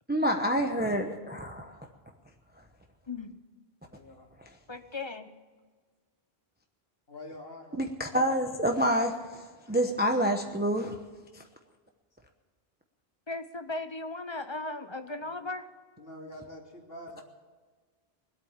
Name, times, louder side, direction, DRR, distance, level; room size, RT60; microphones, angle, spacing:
voice 1, 0.1-1.8 7.8-11.0 11.3-11.4, equal, 10° right, 4 dB, 0.8 m, -28 dB
voice 2, 3.1-3.4 4.7-5.3 13.3-15.7, left 2 dB, 30° left, 10 dB, 0.8 m, -37 dB
voice 3, 3.9-4.3 7.1-7.9 9.7-9.8 15.2-15.3 16.0-17.2, left 1 dB, 65° left, 0 dB, 2.8 m, -46 dB
21.5 x 8.5 x 7.2 m, 1.4 s
omnidirectional pair, 1.1 m